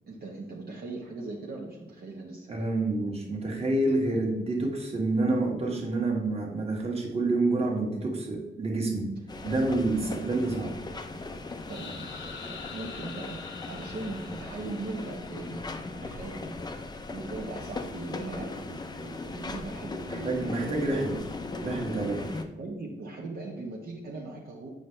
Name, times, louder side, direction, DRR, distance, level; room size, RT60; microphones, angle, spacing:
voice 1, 0.1-2.5 9.9-10.5 11.7-15.6 16.0-16.6 17.1-21.1 22.6-24.7, right 3 dB, 55° right, -2 dB, 1.0 m, -39 dB
voice 2, 2.5-9.1 9.4-10.7 20.1-21.1 21.6-22.2, right 2 dB, 35° right, 0 dB, 1.6 m, -28 dB
sound 1, 9.3-22.4, left 3 dB, 20° left, 0.5 m, -38 dB
sound 2, 11.7-15.5, left 6 dB, 80° left, 0.9 m, -45 dB
7.8 x 5.7 x 3.2 m, 1.0 s
wide cardioid pair, 160°, 19 cm